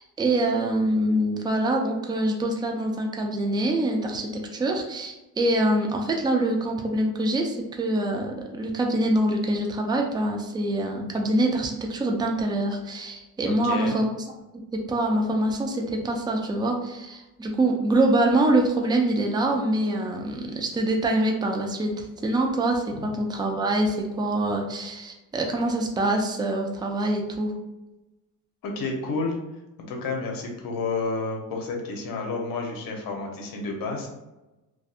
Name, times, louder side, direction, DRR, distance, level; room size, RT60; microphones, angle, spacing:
voice 1, 0.0-14.1 14.5-27.5, right 1 dB, 10° right, 2 dB, 0.4 m, -25 dB
voice 2, 13.4-13.9 22.9-23.0 28.6-29.3 29.9-34.1, left 3 dB, 60° left, 1 dB, 0.9 m, -30 dB
2.6 x 2.3 x 2.4 m, 1.0 s
cardioid pair, 90°, 38 cm